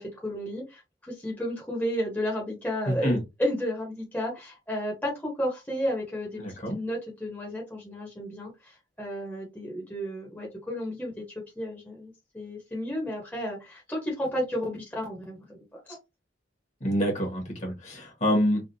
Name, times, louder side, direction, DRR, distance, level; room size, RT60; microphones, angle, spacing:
voice 1, 0.0-11.2 11.6-16.0, equal, 10° left, 1.0 m, -33 dB
voice 2, 2.9-3.2 6.4-6.8 16.8-18.6, equal, 40° left, 1.3 m, -26 dB
3.4 x 2.4 x 2.6 m
head